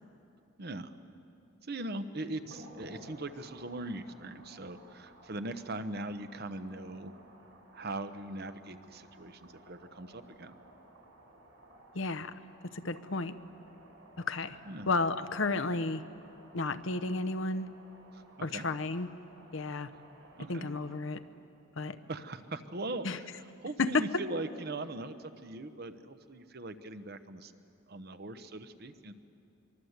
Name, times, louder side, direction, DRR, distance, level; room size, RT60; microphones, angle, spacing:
voice 1, 0.6-0.9 1.6-7.1 7.7-10.6 14.7-14.9 18.1-18.6 20.4-20.7 22.1-27.5 27.9-29.1, right 2 dB, 50° right, 10 dB, 1.0 m, -40 dB
sound 1, 2.3-21.0, right 1 dB, 70° right, 6.3 m, -57 dB
voice 2, 11.9-12.3 12.7-13.4 14.2-14.6 14.9-16.0 16.5-17.7 18.4-19.1 19.5-19.9 20.5-21.2 21.8-22.0 23.0-23.2 23.8-24.2, left 3 dB, 65° left, 10 dB, 0.9 m, -32 dB
24.0 x 24.0 x 8.1 m, 2.7 s
head